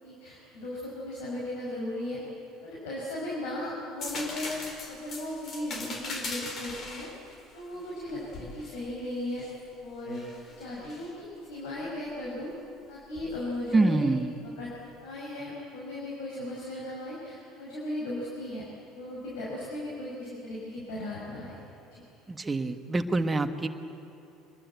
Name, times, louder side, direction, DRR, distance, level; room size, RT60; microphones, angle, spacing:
voice 1, 0.0-2.2 2.6-7.1 7.5-9.5 9.8-10.2 10.6-12.5 12.9-14.1 14.4-14.7 15.0-18.6 18.9-21.6 21.9-22.0, left 1 dB, 70° left, -5 dB, 5.9 m, -36 dB
sound 1, 4.0-9.6 10.1-11.1 13.1-13.3, left 3 dB, 45° left, 4.6 m, -40 dB
voice 2, 13.7-14.3 22.3-23.7, right 2 dB, 20° right, 7 dB, 1.6 m, -26 dB
25.5 x 21.5 x 8.3 m, 2.7 s
hypercardioid pair, 65°, 0 cm